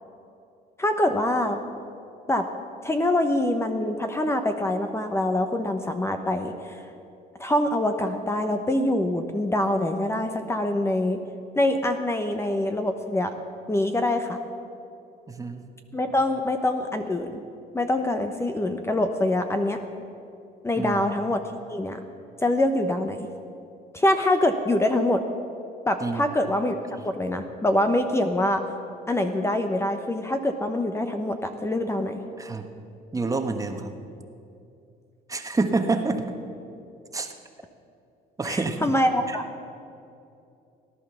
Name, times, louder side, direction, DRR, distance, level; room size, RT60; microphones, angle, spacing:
voice 1, 0.8-1.6 2.3-2.4 2.8-6.5 7.4-11.2 11.6-13.3 13.7-14.4 15.9-17.4 17.7-19.8 20.6-21.4 21.7-22.0 22.4-23.2 23.9-25.2 25.9-28.6 29.1-32.1 38.4-39.4, left 1 dB, 15° left, 6 dB, 1.0 m, -24 dB
voice 2, 15.3-15.6 20.7-21.0 26.0-26.2 32.4-32.7 33.1-34.0 35.3-36.3 37.1-37.3 38.4-38.8 39.3-39.4, right 3 dB, 20° right, 5 dB, 1.3 m, -27 dB
18.0 x 11.0 x 6.9 m, 2.6 s
cardioid pair, 110°, 17 cm